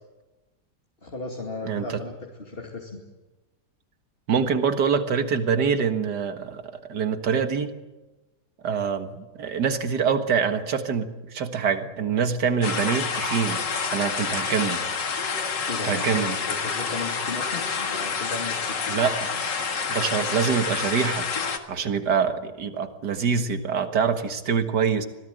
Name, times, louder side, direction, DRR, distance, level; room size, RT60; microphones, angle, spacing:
voice 1, 1.0-3.0 15.7-18.8, left 3 dB, 35° left, 1 dB, 2.6 m, -36 dB
voice 2, 1.6-2.0 4.3-6.6 6.9-7.7 8.6-13.6 13.9-14.8 15.8-16.4 18.9-19.3 19.9-21.3 21.7-25.1, right 6 dB, 70° right, 8 dB, 2.2 m, -25 dB
sound 1, 12.6-21.6, left 5 dB, 90° left, 2.4 m, -28 dB
26.0 x 18.0 x 9.2 m, 1.1 s
omnidirectional pair, 1.9 m